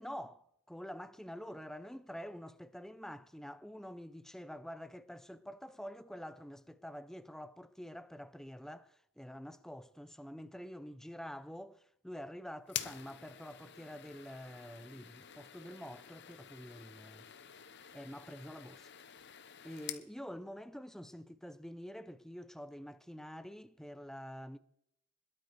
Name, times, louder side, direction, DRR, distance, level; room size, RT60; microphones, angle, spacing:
voice 1, 0.0-17.3 17.9-18.9 19.6-24.6, equal, ahead, 0.6 m, -47 dB
sound 1, 12.7-20.1, left 11 dB, 55° left, 1.1 m, -48 dB
21.5 x 8.7 x 4.8 m
head